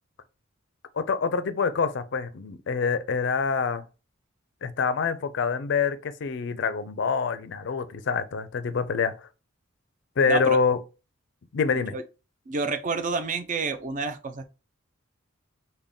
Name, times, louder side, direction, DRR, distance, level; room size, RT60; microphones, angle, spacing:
voice 1, 1.0-3.8 4.6-9.2 10.2-10.8 11.5-12.0, left 5 dB, 60° left, 0.4 m, -26 dB
voice 2, 12.5-14.5, right 3 dB, 40° right, 0.5 m, -29 dB
3.5 x 2.2 x 3.7 m
head